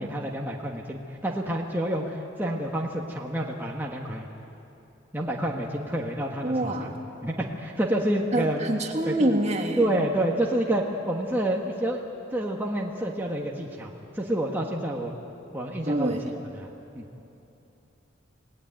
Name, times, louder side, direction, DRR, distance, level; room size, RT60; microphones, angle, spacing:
voice 1, 0.0-4.3 5.1-6.9 7.2-8.6 9.0-9.3 9.8-12.0 12.3-15.1 15.5-16.1 16.5-16.7 16.9-17.0, right 1 dB, 10° right, -2 dB, 1.5 m, -28 dB
voice 2, 6.4-7.0 8.3-9.8 15.9-16.3, right 1 dB, 35° right, 3 dB, 2.0 m, -26 dB
29.0 x 18.5 x 8.9 m, 2.9 s
head